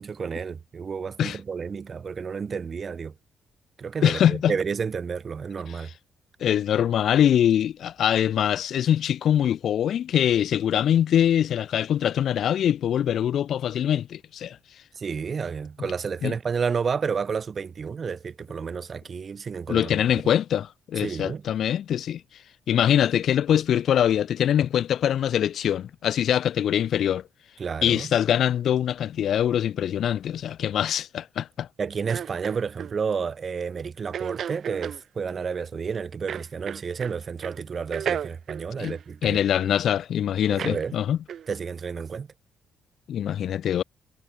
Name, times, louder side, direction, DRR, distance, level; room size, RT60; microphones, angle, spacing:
voice 1, 0.0-3.1 3.8-5.9 15.0-20.0 20.2-20.3 21.0-21.4 27.6-28.1 31.8-39.4 40.5-41.0 41.5-42.3, right 6 dB, 40° right, 5.6 m, -31 dB
voice 2, 4.0-4.5 6.4-14.6 16.2-16.3 19.7-22.2 22.7-27.2 27.8-31.7 38.8-38.9 39.2-41.2 43.1-43.8, left 10 dB, 65° left, 2.7 m, -23 dB
sound 1, 32.1-32.9 34.1-35.0 36.3-37.2 37.4-37.6 37.9-39.7 40.6-40.8 41.3-41.5, right 9 dB, 60° right, 2.2 m, -33 dB
cardioid pair, 90°, 0 cm